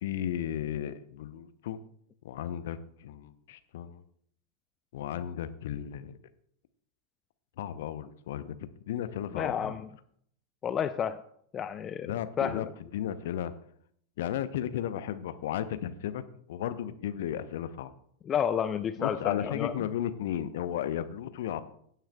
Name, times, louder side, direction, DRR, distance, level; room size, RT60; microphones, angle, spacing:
voice 1, 0.0-1.8 2.2-4.0 4.9-6.2 7.6-8.6 8.9-9.7 12.0-12.7 12.9-13.5 14.2-17.9 19.0-21.6, left 10 dB, 55° left, 12 dB, 0.7 m, -34 dB
voice 2, 9.3-9.9 10.6-11.2 11.5-12.7 18.2-19.7, left 8 dB, 25° left, 13 dB, 0.4 m, -31 dB
16.0 x 9.1 x 2.3 m, 0.67 s
figure-of-eight pair, 90°, 0 cm